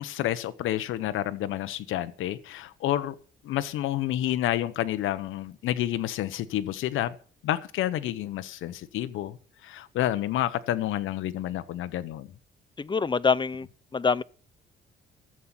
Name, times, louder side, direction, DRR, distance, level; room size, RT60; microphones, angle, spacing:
voice 1, 0.0-3.1 3.4-7.2 7.4-9.4 9.6-12.3, left 13 dB, 85° left, 1.0 m, -29 dB
voice 2, 12.8-13.7 13.9-14.2, left 5 dB, 25° left, 0.8 m, -25 dB
14.0 x 7.6 x 8.9 m
cardioid pair, 90°, 20 cm